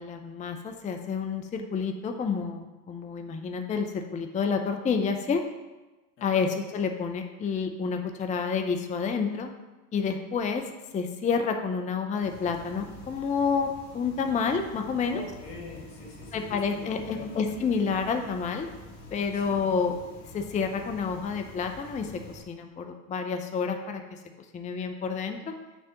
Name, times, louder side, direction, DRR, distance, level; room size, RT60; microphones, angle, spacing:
voice 1, 0.0-5.4 6.2-9.5 9.9-10.6 10.9-15.2 16.3-18.7 19.1-20.0 20.3-24.2 24.5-25.5, left 5 dB, 15° left, 5 dB, 0.5 m, -29 dB
voice 2, 6.2-6.5 15.1-17.6 19.3-19.6, left 3 dB, 85° left, -3 dB, 2.0 m, -44 dB
sound 1, 12.2-22.4, left 2 dB, 60° left, 2.3 m, -47 dB
6.7 x 3.3 x 5.9 m, 1.1 s
hypercardioid pair, 75°, 49 cm